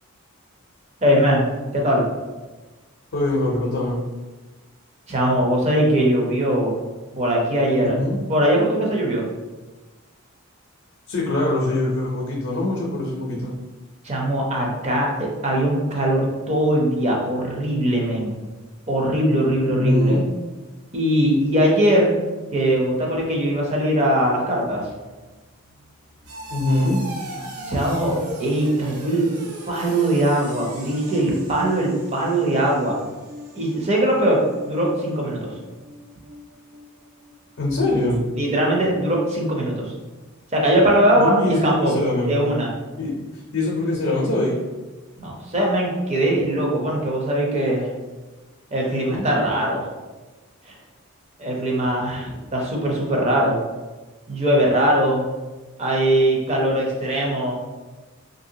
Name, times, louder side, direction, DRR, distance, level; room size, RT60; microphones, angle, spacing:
voice 1, 1.0-2.0 5.1-6.8 7.2-8.0 8.3-9.3 14.0-18.3 18.9-20.2 20.9-22.2 22.5-24.9 27.7-29.3 29.7-33.0 33.5-35.5 38.4-39.9 40.5-42.0 42.3-42.7 45.2-47.9 48.7-49.9 50.6-50.7 51.4-53.6 54.3-55.2 55.8-57.5, right 1 dB, 30° right, -2 dB, 0.6 m, -21 dB
voice 2, 3.1-4.0 7.8-8.2 11.1-13.5 19.7-20.2 26.5-27.0 37.6-38.2 41.2-42.3 43.0-44.6 48.9-49.3, left 2 dB, 55° left, -3 dB, 0.6 m, -23 dB
sound 1, 25.0-37.3 37.6-38.0 38.4-38.5, equal, 80° right, 0.6 m, -38 dB
3.2 x 2.6 x 2.7 m, 1.2 s
head